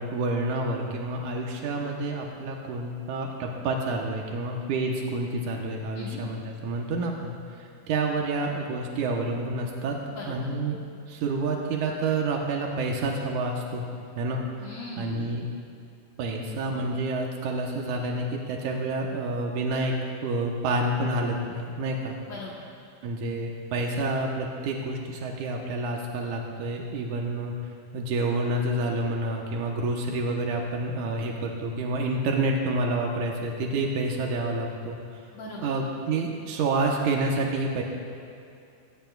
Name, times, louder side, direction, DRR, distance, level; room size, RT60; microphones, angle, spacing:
voice 1, 0.0-7.3 7.9-10.0 10.3-10.8 11.1-13.9 14.2-14.4 15.0-15.5 16.2-19.9 20.2-22.1 23.0-27.5 27.9-35.0 35.6-37.8, right 2 dB, 85° right, 0 dB, 2.7 m, -28 dB
voice 2, 10.1-10.5 14.3-15.3 22.2-22.7 35.3-35.7, left 2 dB, 65° left, -4 dB, 2.6 m, -39 dB
21.5 x 18.5 x 2.5 m, 2.5 s
omnidirectional pair, 3.5 m